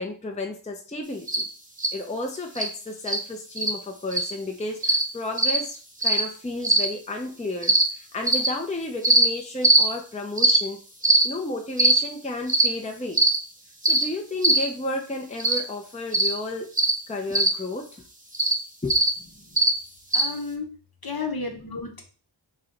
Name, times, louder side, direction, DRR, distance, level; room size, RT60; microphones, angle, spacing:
voice 1, 0.0-1.4 1.9-10.8 11.2-13.2 13.8-16.7 17.1-18.0 18.8-19.0, left 2 dB, 15° left, 3 dB, 0.6 m, -32 dB
sound 1, 1.3-1.4 1.8-1.9 2.6-2.7 3.1-3.2 3.6-3.7 4.1-4.3 4.8-5.0 5.4-5.6 6.0-6.2 6.6-6.9 7.6-7.8 8.3-8.5 9.0-9.2 9.6-9.8 10.4-10.6 11.0-11.2 11.8-12.0 12.5-12.7 13.1-13.4 13.8-14.0 14.4-14.6 15.4-15.6 16.1-16.3 16.8-16.9 17.3-17.5 18.3-18.5 18.9-19.1 19.6-19.7 20.1-20.3, right 2 dB, 15° right, 0.7 m, -19 dB
voice 2, 20.1-20.7 21.0-22.1, left 4 dB, 50° left, 2 dB, 1.0 m, -32 dB
3.1 x 2.9 x 3.8 m, 0.38 s
wide cardioid pair, 40°, 47 cm